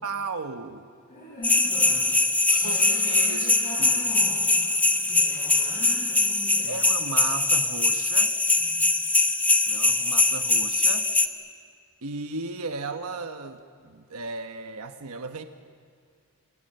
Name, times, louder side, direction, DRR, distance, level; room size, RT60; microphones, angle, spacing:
voice 1, 0.0-0.9 2.6-3.5 3.8-4.0 6.7-8.4 9.7-11.1 12.0-15.4, right 3 dB, 75° right, 6 dB, 1.2 m, -35 dB
voice 2, 1.1-2.2 2.6-6.8 8.5-8.9, equal, 35° left, -6 dB, 7.3 m, -41 dB
sound 1, 1.4-11.3, left 2 dB, 5° left, 1.1 m, -22 dB
sound 2, 2.5-8.6, left 5 dB, 60° left, 5.0 m, -49 dB
29.0 x 26.0 x 6.8 m, 2.1 s
head